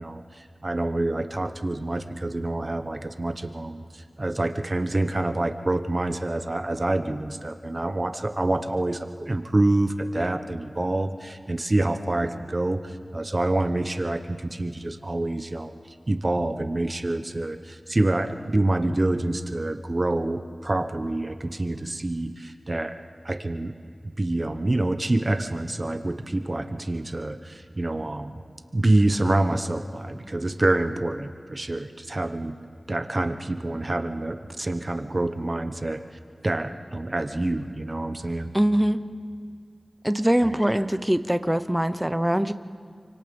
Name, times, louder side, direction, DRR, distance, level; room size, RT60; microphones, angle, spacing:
voice 1, 0.0-15.7 16.1-23.0 23.2-23.7 24.2-28.4 28.7-32.6 32.9-36.0 36.4-38.5 40.4-40.6, right 2 dB, 40° right, 8 dB, 1.0 m, -27 dB
voice 2, 38.5-39.0 40.0-42.5, equal, 10° right, 11 dB, 0.8 m, -22 dB
28.0 x 25.0 x 5.4 m, 2.3 s
wide cardioid pair, 70°, 0 cm